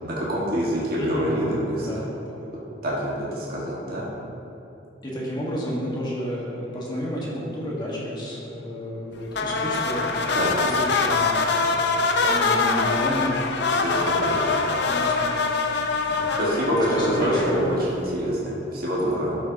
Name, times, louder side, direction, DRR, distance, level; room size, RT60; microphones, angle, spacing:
voice 1, 0.0-1.9 2.8-4.1 10.3-10.5 13.7-14.6 16.4-19.4, equal, 50° right, -6 dB, 1.8 m, -26 dB
voice 2, 1.0-1.4 1.8-2.4 5.0-10.0 10.6-11.3 11.6-13.3 13.7-14.3 14.8-16.4 16.9-17.7 19.0-19.2, equal, 25° left, -5 dB, 1.7 m, -31 dB
sound 1, 9.3-17.8, left 4 dB, 60° left, 0.6 m, -24 dB
12.0 x 6.3 x 3.0 m, 2.9 s
head